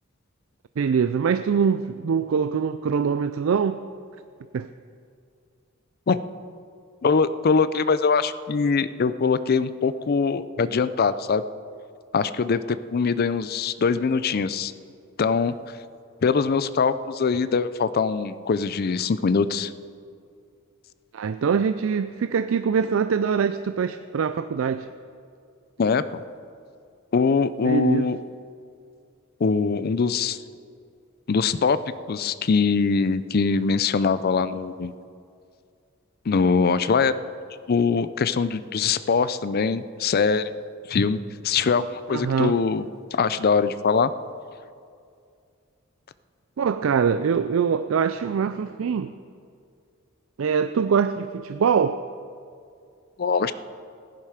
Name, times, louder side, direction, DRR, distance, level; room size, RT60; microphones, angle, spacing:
voice 1, 0.8-3.8 4.5-4.7 21.1-24.9 27.6-28.1 42.1-42.6 46.6-49.1 50.4-52.0, right 6 dB, 75° right, 11 dB, 0.4 m, -23 dB
voice 2, 7.0-11.4 12.1-14.7 15.2-15.5 16.2-19.7 25.8-26.0 27.1-28.2 29.4-30.4 31.3-31.8 32.1-34.9 36.3-37.1 37.7-40.5 40.9-42.8 43.1-44.1 53.2-53.5, left 5 dB, 50° left, 14 dB, 0.4 m, -22 dB
15.5 x 10.5 x 5.0 m, 2.3 s
head